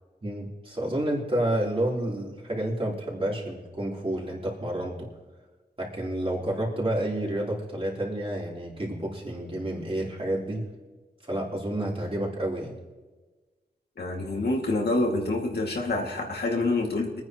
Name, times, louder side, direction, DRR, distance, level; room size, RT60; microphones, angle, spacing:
voice 1, 0.2-5.1 5.8-10.7 11.2-12.7, right 1 dB, 35° right, -4 dB, 3.8 m, -30 dB
voice 2, 14.0-17.2, left 2 dB, 70° left, 0 dB, 2.5 m, -27 dB
24.5 x 9.6 x 3.1 m, 1.3 s
wide cardioid pair, 90°, 17 cm